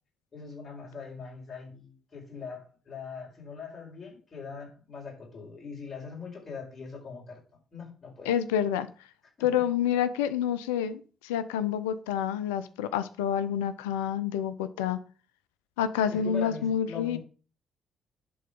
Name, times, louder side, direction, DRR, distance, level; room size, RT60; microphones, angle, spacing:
voice 1, 0.3-7.4 7.7-8.3 9.4-9.6 16.1-17.2, left 5 dB, 45° left, -1 dB, 5.0 m, -41 dB
voice 2, 8.3-8.9 9.4-15.0 15.8-17.2, left 9 dB, 85° left, 14 dB, 0.5 m, -28 dB
11.5 x 3.9 x 5.2 m, 0.38 s
hypercardioid pair, 45°, 0 cm